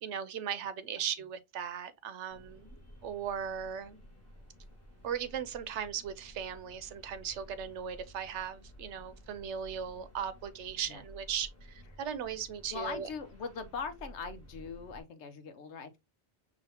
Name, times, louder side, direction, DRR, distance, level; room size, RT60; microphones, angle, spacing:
voice 1, 0.0-2.8 3.0-4.0 5.0-13.1, right 8 dB, 75° right, 0.9 m, -38 dB
sound 1, 2.3-15.0, equal, 15° left, 1.4 m, -54 dB
voice 2, 12.7-16.0, left 5 dB, 75° left, 1.1 m, -41 dB
6.1 x 2.8 x 2.7 m
omnidirectional pair, 1.2 m